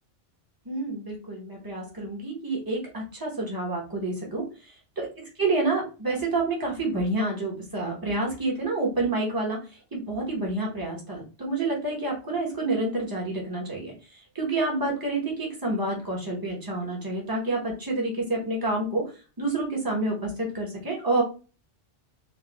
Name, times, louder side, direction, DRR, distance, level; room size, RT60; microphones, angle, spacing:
voice 1, 0.6-4.4 5.0-9.6 9.9-13.9 14.3-19.1 19.4-21.2, right 2 dB, 20° right, -2 dB, 1.1 m, -28 dB
4.2 x 2.5 x 2.3 m, 0.33 s
omnidirectional pair, 1.2 m